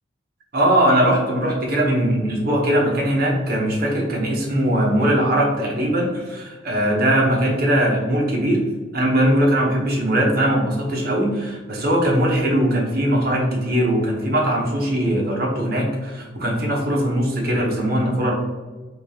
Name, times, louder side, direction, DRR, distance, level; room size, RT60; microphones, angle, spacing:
voice 1, 0.5-8.6 8.9-18.3, right 1 dB, 50° right, 0 dB, 0.9 m, -20 dB
4.8 x 2.9 x 2.7 m, 1.3 s
head